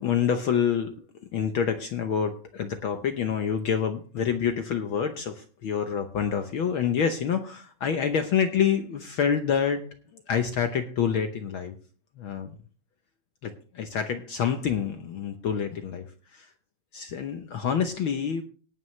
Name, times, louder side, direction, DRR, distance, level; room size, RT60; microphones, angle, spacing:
voice 1, 0.0-11.8 12.2-12.5 13.4-16.1 16.3-16.5 16.9-18.4, left 7 dB, 75° left, 7 dB, 1.2 m, -27 dB
18.5 x 9.0 x 3.2 m, 0.38 s
omnidirectional pair, 3.4 m